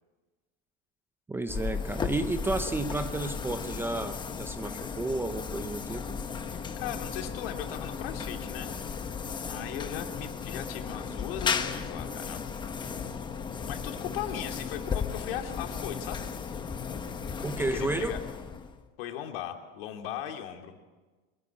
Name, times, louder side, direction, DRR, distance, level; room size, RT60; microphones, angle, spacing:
voice 1, 1.3-6.2 17.4-18.2, right 2 dB, 10° right, 10 dB, 0.6 m, -32 dB
sound 1, 1.5-18.9, left 6 dB, 15° left, 1.0 m, -35 dB
voice 2, 6.5-8.8 9.4-12.4 13.7-16.3 17.5-18.2 19.0-20.8, left 10 dB, 75° left, 4 dB, 2.7 m, -38 dB
23.0 x 15.0 x 8.7 m, 1.3 s
supercardioid pair, 160°, 29 cm